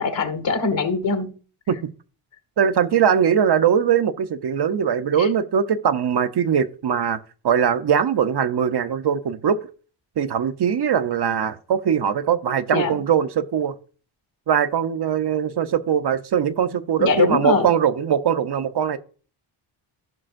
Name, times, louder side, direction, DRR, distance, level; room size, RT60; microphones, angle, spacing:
voice 1, 0.0-1.3 5.2-5.3 12.7-13.0 17.0-17.7, left 4 dB, 60° left, 1.7 m, -22 dB
voice 2, 2.6-7.2 7.4-9.6 10.2-13.7 14.5-19.0, right 8 dB, 50° right, 0.8 m, -21 dB
15.5 x 5.6 x 2.6 m
cardioid pair, 80°, 50 cm